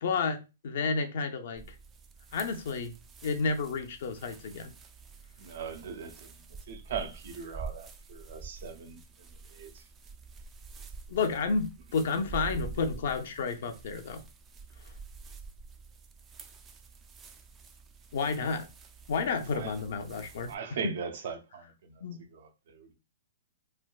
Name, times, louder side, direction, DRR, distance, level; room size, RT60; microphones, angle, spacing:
voice 1, 0.0-1.6 2.3-2.9 3.2-4.7 11.1-14.2 18.1-18.7 19.1-20.5 20.8-20.9 22.0-22.2, left 4 dB, 65° left, 0.5 m, -31 dB
sound 1, 1.5-20.5, right 4 dB, 20° right, 0.3 m, -47 dB
voice 2, 5.4-9.0 9.5-9.8 19.5-19.7 20.5-22.0 22.3-22.9, right 6 dB, 65° right, 0.6 m, -40 dB
3.3 x 2.2 x 2.4 m
hypercardioid pair, 135°, 0 cm